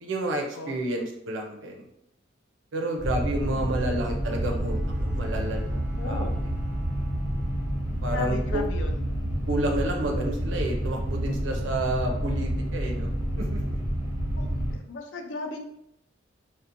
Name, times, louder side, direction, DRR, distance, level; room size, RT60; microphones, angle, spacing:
voice 1, 0.0-1.9 2.7-5.8 6.0-6.3 8.0-8.6 9.5-13.8, right 1 dB, 70° right, 2 dB, 0.5 m, -30 dB
sound 1, 3.0-14.7, equal, 20° left, 0.8 m, -29 dB
voice 2, 3.4-3.9 6.0-6.3 8.1-9.0 14.4-15.6, left 2 dB, 70° left, 4 dB, 0.4 m, -37 dB
Bowed string instrument, 4.4-8.2, right 3 dB, 5° right, 0.3 m, -49 dB
2.7 x 2.1 x 2.5 m, 0.79 s
head